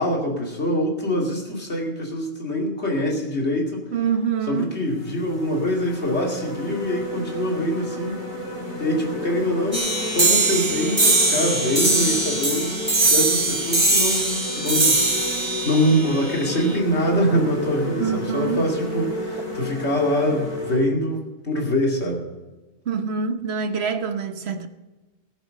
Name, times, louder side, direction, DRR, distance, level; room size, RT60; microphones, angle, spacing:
voice 1, 0.0-3.8 4.5-8.2 8.8-9.8 10.1-12.8 13.1-15.0 15.4-22.2, equal, 75° left, 2.9 m, -24 dB
sound 1, 3.8-4.0 4.6-20.8, left 1 dB, 30° left, 5.2 m, -32 dB
voice 2, 3.9-4.8 18.0-18.7 22.8-24.7, right 6 dB, 70° right, 1.2 m, -25 dB
sound 2, 9.7-16.7, right 2 dB, 25° right, 1.9 m, -21 dB
18.5 x 7.5 x 6.6 m
omnidirectional pair, 1.1 m